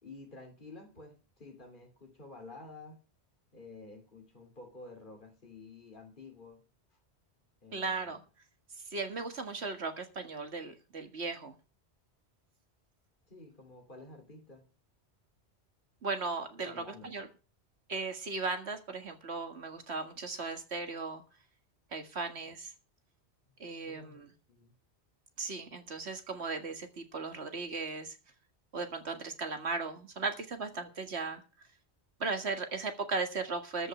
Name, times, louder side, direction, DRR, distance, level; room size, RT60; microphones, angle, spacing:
voice 1, 0.0-3.0 3.5-6.6 7.6-8.2 13.3-14.7 16.6-17.2 23.8-24.7, left 3 dB, 50° left, 3.0 m, -51 dB
voice 2, 7.7-8.2 8.9-11.5 16.0-17.3 17.9-21.2 21.9-22.7 23.6-24.3 25.4-28.2 28.7-31.4 32.2-33.9, right 4 dB, 75° right, 2.1 m, -37 dB
13.5 x 5.5 x 8.9 m
omnidirectional pair, 1.1 m